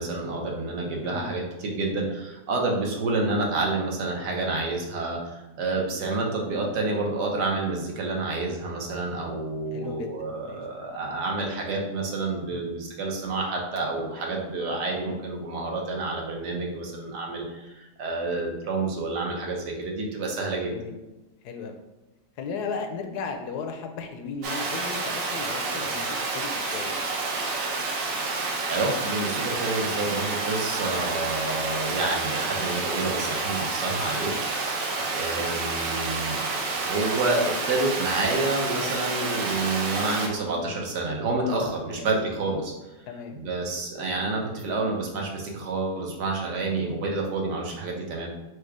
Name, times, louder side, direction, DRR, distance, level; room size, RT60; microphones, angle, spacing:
voice 1, 0.0-20.7 25.7-25.8 28.7-34.3 34.7-34.8 35.1-36.4 36.7-42.7 43.3-48.3, right 3 dB, 80° right, 0 dB, 1.5 m, -29 dB
voice 2, 9.7-10.2 10.4-10.6 12.5-12.7 20.7-21.0 21.4-21.8 22.4-27.0 35.0-35.2 41.9-42.1 43.1-43.4 43.7-43.8, left 5 dB, 75° left, 5 dB, 1.1 m, -36 dB
Water, 24.4-40.3, right 3 dB, 60° right, 1.0 m, -29 dB
4.9 x 2.3 x 4.7 m, 1.0 s
omnidirectional pair, 1.8 m